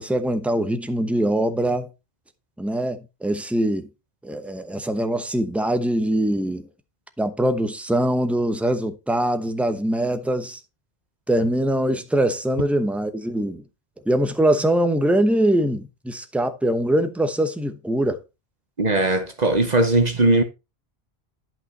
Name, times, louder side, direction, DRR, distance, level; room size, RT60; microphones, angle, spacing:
voice 1, 0.0-1.9 2.6-3.9 4.2-6.7 7.2-10.6 11.3-13.6 14.1-18.2, right 1 dB, ahead, 0.8 m, -22 dB
voice 2, 18.8-20.4, right 2 dB, 45° right, 1.1 m, -19 dB
11.0 x 5.6 x 4.2 m
omnidirectional pair, 1.1 m